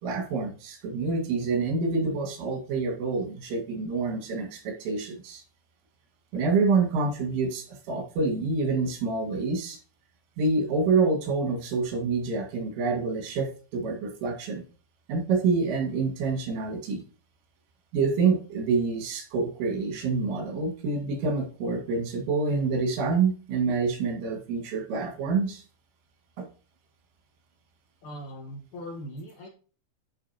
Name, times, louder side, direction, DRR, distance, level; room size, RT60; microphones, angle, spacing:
voice 1, 0.0-5.4 6.3-9.8 10.4-14.6 15.1-17.0 17.9-25.6 26.4-26.5, right 4 dB, 90° right, 2 dB, 4.6 m, -27 dB
voice 2, 28.0-29.5, equal, 55° left, -2 dB, 2.6 m, -40 dB
11.5 x 4.8 x 2.9 m, 0.38 s
omnidirectional pair, 5.4 m